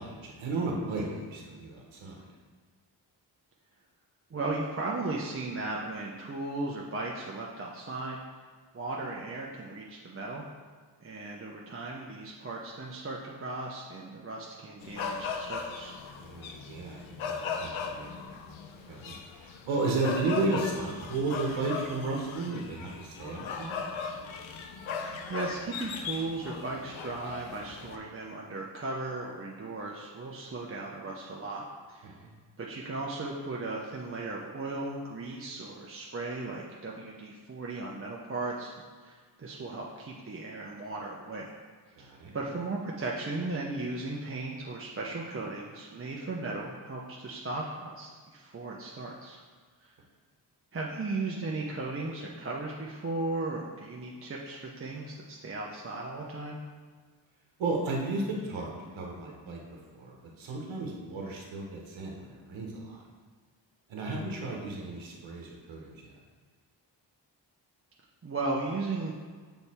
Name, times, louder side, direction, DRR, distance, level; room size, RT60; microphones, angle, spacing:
voice 1, 0.0-2.2 16.2-18.4 18.9-23.8 32.0-32.3 42.0-42.3 57.6-63.0 63.9-66.1, right 3 dB, 90° right, -1 dB, 1.0 m, -34 dB
voice 2, 4.3-8.2 8.7-10.4 11.0-16.0 24.9-25.0 25.3-32.1 32.6-38.7 39.0-41.5 42.0-49.4 49.8-49.9 50.7-56.6 68.2-69.1, right 2 dB, 30° right, -3 dB, 0.7 m, -36 dB
sound 1, 14.8-28.0, left 5 dB, 85° left, 0.6 m, -38 dB
6.4 x 3.4 x 4.2 m, 1.5 s
cardioid pair, 70°, 46 cm